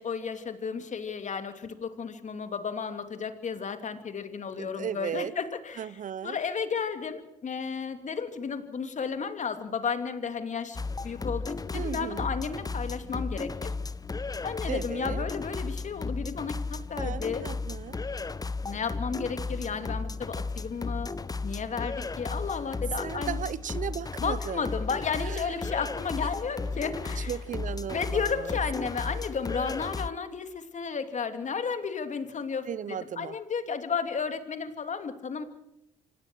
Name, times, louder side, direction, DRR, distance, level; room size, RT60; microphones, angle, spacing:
voice 1, 0.0-5.9 6.2-13.7 14.4-17.5 18.6-21.1 21.4-23.4 24.2-27.3 27.9-35.4, left 6 dB, 45° left, 2.9 m, -33 dB
voice 2, 4.6-5.3 5.8-6.4 11.7-12.3 14.7-15.2 17.0-18.0 23.0-24.7 25.2-25.7 27.2-28.6 32.7-33.4, right 9 dB, 50° right, 0.7 m, -36 dB
sound 1, 10.7-30.1, left 3 dB, 20° left, 0.9 m, -34 dB
25.5 x 18.5 x 6.3 m
hypercardioid pair, 50°, 16 cm